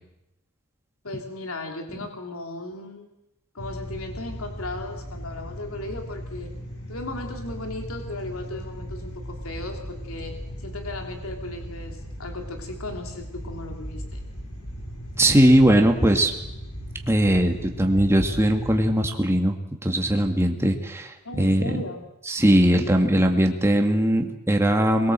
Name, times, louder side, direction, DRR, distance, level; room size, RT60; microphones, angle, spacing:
voice 1, 1.0-3.1 3.5-6.5 6.9-14.2 21.2-22.0, left 2 dB, 70° left, 4 dB, 3.1 m, -36 dB
sound 1, 3.6-18.8, equal, 85° left, 6.5 m, -37 dB
voice 2, 15.2-16.3 17.1-19.6 19.8-21.8 22.3-25.1, right 1 dB, 10° right, 3 dB, 2.2 m, -20 dB
23.5 x 22.0 x 7.7 m, 0.88 s
head